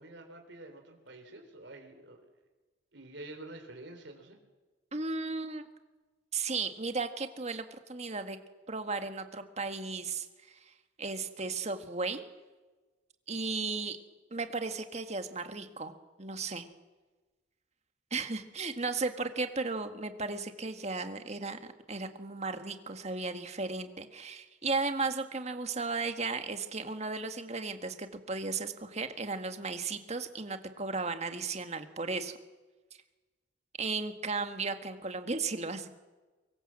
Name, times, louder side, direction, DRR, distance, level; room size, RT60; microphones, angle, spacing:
voice 1, 0.0-2.2 2.9-4.4, right 2 dB, 65° right, 4 dB, 3.8 m, -48 dB
voice 2, 4.9-5.6 6.3-8.4 8.7-10.7 11.0-12.2 13.3-14.0 14.3-15.9 16.2-16.7 18.1-32.3 33.8-35.9, right 3 dB, 35° right, 8 dB, 1.7 m, -35 dB
24.5 x 22.5 x 7.7 m, 1.2 s
head